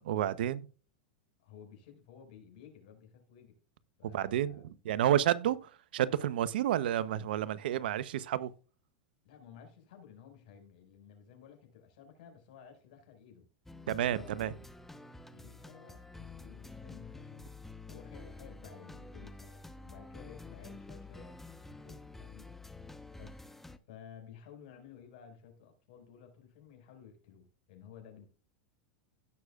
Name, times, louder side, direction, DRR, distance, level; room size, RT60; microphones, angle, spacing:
voice 1, 0.1-0.7 4.0-4.5 4.8-5.6 5.9-8.5 13.9-14.5, right 11 dB, 80° right, 0.8 m, -30 dB
voice 2, 1.4-3.6 4.0-4.8 5.5-5.6 9.2-13.5 13.9-14.6 15.3-17.4 17.9-21.4 21.6-22.6 23.2-23.4 23.9-28.3, left 7 dB, 70° left, 5.1 m, -54 dB
sound 1, 13.7-23.8, left 3 dB, 5° left, 0.9 m, -49 dB
16.5 x 6.4 x 2.4 m
hypercardioid pair, 115°, 5 cm